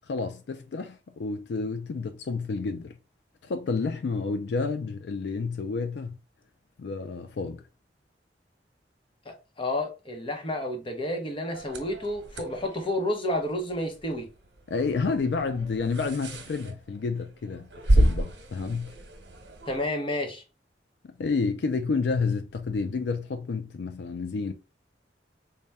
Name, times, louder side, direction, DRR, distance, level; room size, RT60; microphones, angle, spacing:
voice 1, 0.1-3.0 3.4-6.2 6.8-7.6 14.7-18.9 21.0-24.5, left 4 dB, 75° left, 0.4 m, -30 dB
voice 2, 9.3-14.3 19.7-20.4, left 1 dB, 30° left, 0.8 m, -30 dB
sound 1, 11.5-19.9, right 1 dB, 75° right, 0.9 m, -30 dB
4.1 x 2.2 x 3.4 m
head